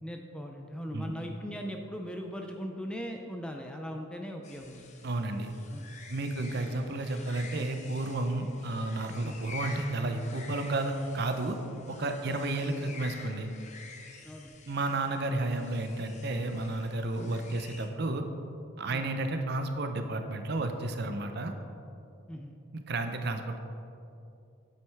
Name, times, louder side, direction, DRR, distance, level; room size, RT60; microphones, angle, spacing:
voice 1, 0.0-4.8 5.7-5.9 8.4-8.5 9.2-9.4 12.3-12.4 14.2-14.5 18.9-19.1 22.3-22.5, equal, 5° left, 2 dB, 0.3 m, -39 dB
sound 1, 4.4-17.9, left 4 dB, 35° left, 0.7 m, -49 dB
voice 2, 5.0-5.5 6.1-11.6 11.9-13.5 14.7-18.2 18.8-21.5 22.7-23.6, right 2 dB, 50° right, 7 dB, 0.6 m, -32 dB
8.5 x 7.7 x 3.4 m, 2.7 s
head